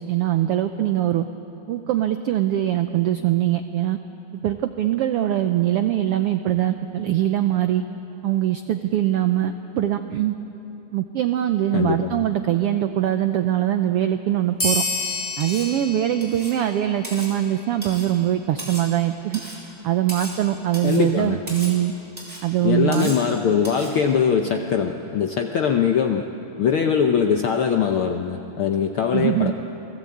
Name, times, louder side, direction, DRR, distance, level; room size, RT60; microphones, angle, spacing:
voice 1, 0.1-1.2 1.7-4.0 4.4-7.8 8.2-10.3 10.9-14.8 15.4-19.4 19.8-21.9 22.4-23.2 29.1-29.5, right 12 dB, 85° right, 8 dB, 1.3 m, -22 dB
voice 2, 11.7-12.2 20.8-21.4 22.6-26.2 26.6-29.5, left 7 dB, 70° left, 4 dB, 1.2 m, -21 dB
sound 1, 14.6-17.6, left 2 dB, 15° left, 5.8 m, -29 dB
Cutlery silverware, 15.4-15.8 16.2-16.6 17.0-17.3 17.8-18.1 18.6-18.9 19.3-19.6 20.1-20.4 20.7-21.1 21.5-21.8 22.2-22.4 22.9-23.3 23.6-24.0, equal, 10° right, 5.0 m, -36 dB
28.0 x 19.0 x 8.6 m, 3.0 s
omnidirectional pair, 3.5 m